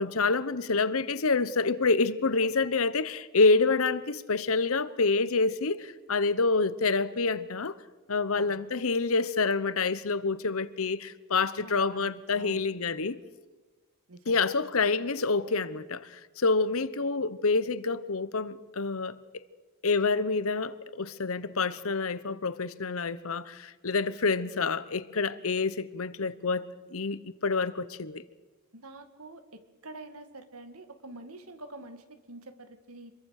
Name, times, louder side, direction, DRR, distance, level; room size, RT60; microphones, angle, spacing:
voice 1, 0.0-7.7 8.1-13.2 14.3-19.2 19.8-26.7 26.9-28.2, left 4 dB, 70° left, 1.0 m, -27 dB
voice 2, 8.3-8.7 11.6-12.7 14.1-14.4 28.7-33.1, right 2 dB, 75° right, 2.1 m, -47 dB
26.5 x 22.0 x 6.6 m
head